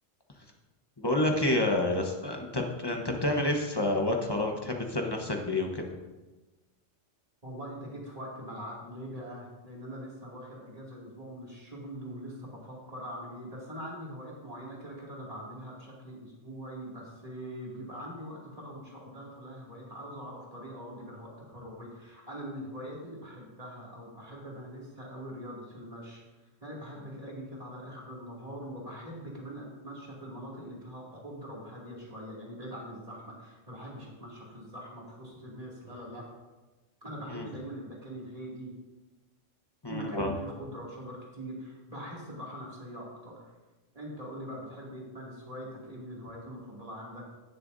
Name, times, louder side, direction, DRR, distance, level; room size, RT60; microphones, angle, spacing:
voice 1, 1.0-5.8 37.3-37.5 39.8-40.3, left 1 dB, 20° left, 1 dB, 1.1 m, -29 dB
voice 2, 7.4-26.2 26.6-36.3 37.0-38.7 39.9-43.4 43.9-47.2, equal, 30° right, -5 dB, 2.7 m, -42 dB
18.0 x 6.7 x 2.7 m, 1.1 s
omnidirectional pair, 1.3 m